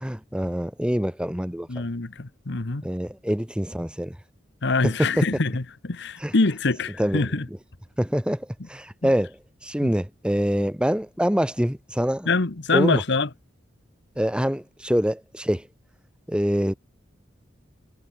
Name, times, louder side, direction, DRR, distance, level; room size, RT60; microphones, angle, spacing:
voice 1, 0.0-1.7 2.8-4.1 4.8-5.1 6.2-6.3 7.0-7.2 8.0-9.3 9.6-12.3 12.7-13.0 14.2-15.6 16.3-16.7, equal, 5° right, 1.5 m, -25 dB
voice 2, 1.7-2.8 4.6-7.5 9.0-9.1 9.8-9.9 12.2-13.3, left 3 dB, 65° left, 1.2 m, -24 dB
head